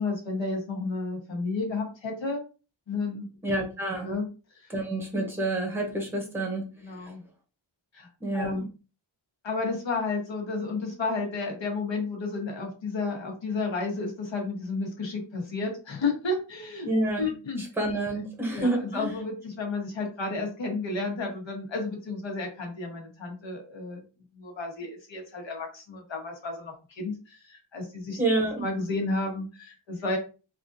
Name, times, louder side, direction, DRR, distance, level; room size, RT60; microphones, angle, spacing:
voice 1, 0.0-2.4 2.9-3.3 4.0-4.3 4.5-4.7 6.8-7.2 7.9-8.7 9.4-16.9 17.2-17.6 18.5-24.0 24.3-28.2 28.6-30.2, left 3 dB, 65° left, 1 dB, 1.3 m, -32 dB
voice 2, 3.4-4.1 4.7-7.1 8.2-8.5 16.8-17.3 17.6-19.1 28.2-28.6, right 2 dB, 5° right, 1 dB, 0.9 m, -28 dB
3.5 x 2.5 x 2.6 m, 0.33 s
wide cardioid pair, 155°, 49 cm